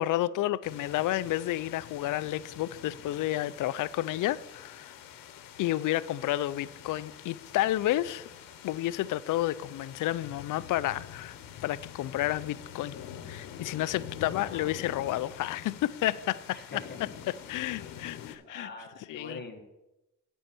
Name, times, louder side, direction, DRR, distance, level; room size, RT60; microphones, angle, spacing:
voice 1, 0.0-4.9 5.6-8.3 8.6-11.4 11.6-12.9 13.3-16.8 17.3-18.7 19.1-19.4, left 14 dB, 70° left, 0.5 m, -31 dB
sound 1, 0.6-18.4, left 9 dB, 85° left, 1.1 m, -46 dB
voice 2, 14.4-14.8 16.5-17.9 18.4-19.6, left 3 dB, 30° left, 1.9 m, -45 dB
9.4 x 5.6 x 7.6 m
cardioid pair, 95°, 33 cm